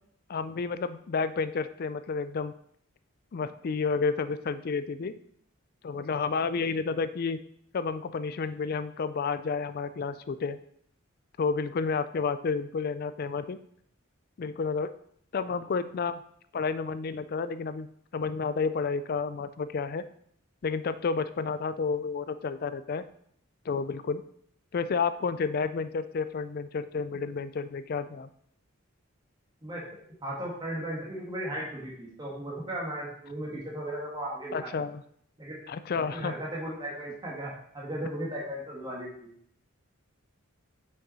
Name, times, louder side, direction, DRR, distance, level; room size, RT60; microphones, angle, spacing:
voice 1, 0.3-2.5 3.3-5.2 5.8-7.4 7.7-10.6 11.4-13.6 14.4-14.9 15.3-16.2 16.5-17.9 18.1-20.1 20.6-23.0 23.7-24.2 24.7-28.3 34.5-35.0 35.7-36.3, left 5 dB, 45° left, 13 dB, 0.4 m, -30 dB
voice 2, 30.2-34.8 35.4-39.3, right 1 dB, 20° right, -4 dB, 1.7 m, -36 dB
6.0 x 5.9 x 4.1 m, 0.66 s
head